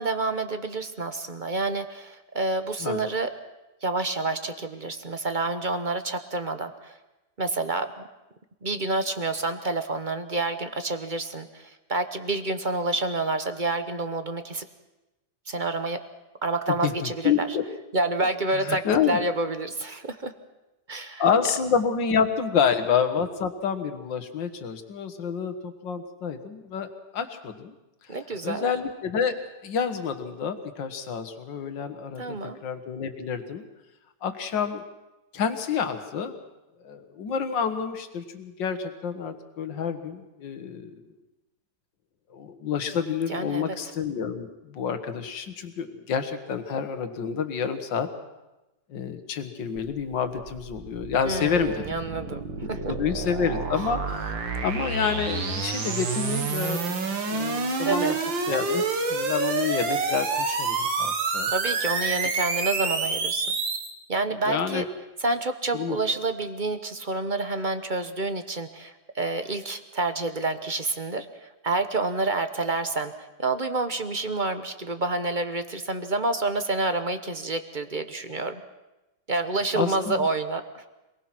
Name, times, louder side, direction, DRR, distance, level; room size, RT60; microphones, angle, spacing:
voice 1, 0.0-3.3 3.8-7.0 7.4-8.0 8.6-14.6 15.5-16.0 16.4-17.5 17.9-20.3 20.9-21.2 22.1-22.2 28.1-28.7 32.2-32.6 43.3-43.8 51.2-52.4 52.7-52.9 57.8-58.2 61.5-63.5 64.1-64.8 65.2-73.1 73.4-78.6 79.3-80.8, right 2 dB, 30° right, 8 dB, 1.0 m, -28 dB
voice 2, 16.8-17.6 18.5-19.2 21.2-26.9 27.1-27.7 28.1-28.2 28.4-29.4 29.6-32.4 32.6-33.6 34.2-34.8 35.3-36.4 36.8-41.0 42.3-48.1 48.9-51.9 52.9-56.8 57.3-58.2 58.5-58.8 59.1-61.5 64.5-64.8 65.7-66.0 79.7-80.3, left 7 dB, 75° left, 8 dB, 2.2 m, -28 dB
sound 1, 49.8-63.9, right 4 dB, 85° right, 2.5 m, -28 dB
26.5 x 19.0 x 6.1 m, 1.0 s
omnidirectional pair, 2.0 m